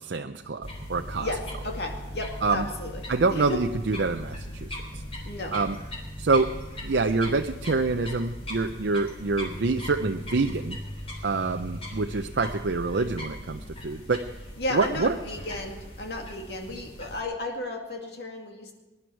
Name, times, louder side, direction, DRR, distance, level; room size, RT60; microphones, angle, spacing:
voice 1, 0.0-1.3 2.4-2.7 3.1-4.7 5.5-5.8 6.2-6.5 6.8-10.8 11.2-14.3 14.7-15.1, right 3 dB, 75° right, 6 dB, 0.6 m, -26 dB
sound 1, 0.6-17.2, equal, 35° left, 3.4 m, -39 dB
voice 2, 1.2-3.6 5.3-5.5 14.6-18.7, left 2 dB, 65° left, 2 dB, 2.3 m, -34 dB
20.5 x 11.0 x 4.6 m, 1.1 s
head